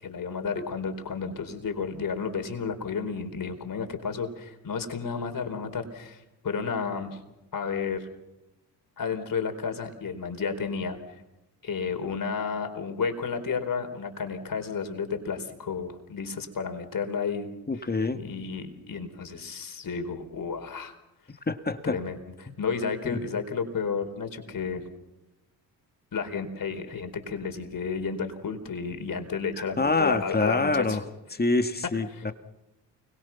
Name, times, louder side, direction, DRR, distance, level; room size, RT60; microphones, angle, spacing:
voice 1, 0.0-7.2 7.5-8.1 9.0-11.0 11.6-17.9 18.1-20.9 21.8-24.9 26.1-31.0 32.1-32.2, left 5 dB, 45° left, 7 dB, 4.3 m, -32 dB
voice 2, 17.7-18.2 21.5-22.0 23.0-23.2 29.8-31.0 31.4-32.3, left 3 dB, 20° left, 8 dB, 2.1 m, -26 dB
29.5 x 23.0 x 5.9 m, 0.99 s
hypercardioid pair, 50°, 46 cm